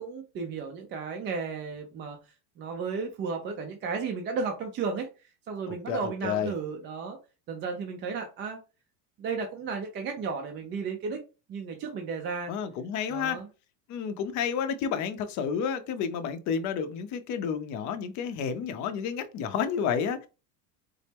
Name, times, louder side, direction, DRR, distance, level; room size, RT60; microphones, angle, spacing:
voice 1, 0.0-2.2 2.6-5.1 5.5-7.2 7.5-8.6 9.2-11.2 11.5-12.5 13.1-13.5, right 5 dB, 25° right, 0.4 m, -34 dB
voice 2, 5.7-6.5 12.5-13.4 13.9-20.3, left 7 dB, 40° left, 0.6 m, -30 dB
4.1 x 2.0 x 3.4 m
supercardioid pair, 120°, 48 cm